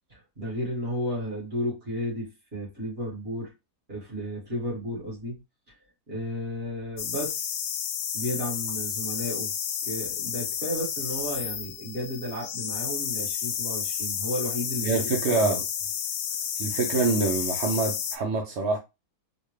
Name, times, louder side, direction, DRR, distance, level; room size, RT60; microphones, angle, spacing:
voice 1, 0.1-3.5 3.9-5.4 6.1-7.4 8.1-9.5 9.8-15.5, equal, 40° right, 2.0 m, -33 dB
sound 1, 7.0-18.2, left 8 dB, 75° left, 1.0 m, -31 dB
voice 2, 14.8-15.6 16.6-18.8, right 3 dB, 60° right, 0.7 m, -25 dB
4.1 x 2.2 x 3.1 m
omnidirectional pair, 1.6 m